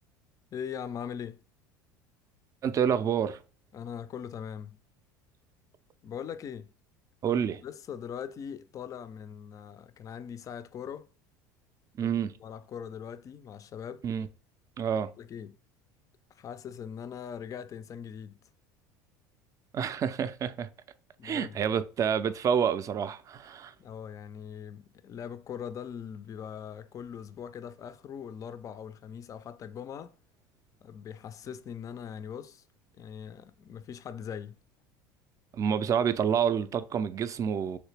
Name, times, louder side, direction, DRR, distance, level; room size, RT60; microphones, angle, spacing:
voice 1, 0.5-1.4 3.7-4.8 6.0-6.7 7.3-11.1 12.0-12.1 12.4-14.1 15.2-15.5 16.3-18.3 21.2-21.6 23.8-30.1 30.8-32.6 33.0-34.6, left 8 dB, 35° left, 0.4 m, -41 dB
voice 2, 2.6-3.4 7.2-7.6 12.0-12.4 14.0-14.3 14.8-15.1 19.7-20.7 21.2-23.7 35.5-37.8, right 8 dB, 35° right, 0.4 m, -28 dB
3.1 x 2.9 x 3.3 m
supercardioid pair, 90°, 10 cm